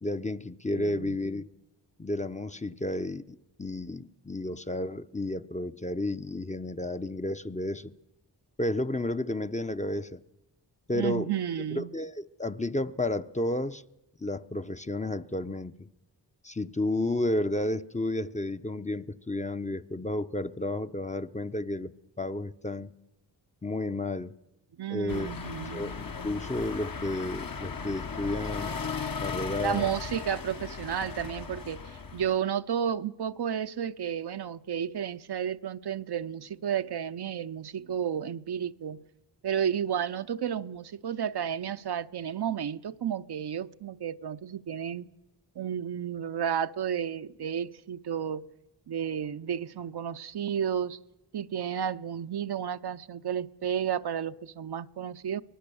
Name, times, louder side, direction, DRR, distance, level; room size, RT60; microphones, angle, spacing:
voice 1, 0.0-1.5 2.0-7.9 8.6-10.2 10.9-11.3 11.7-13.8 14.2-15.7 16.4-21.9 22.2-22.9 23.6-24.3 24.9-25.3 25.7-28.8 29.2-29.9, left 1 dB, 15° left, 0.7 m, -32 dB
voice 2, 0.7-1.2 10.9-11.9 24.8-25.9 29.6-39.0 39.4-45.1 45.6-48.5 48.9-51.0 51.3-55.4, right 8 dB, 65° right, 0.7 m, -32 dB
sound 1, 25.1-32.3, left 5 dB, 50° left, 1.2 m, -37 dB
24.5 x 18.5 x 7.0 m
cardioid pair, 45°, 43 cm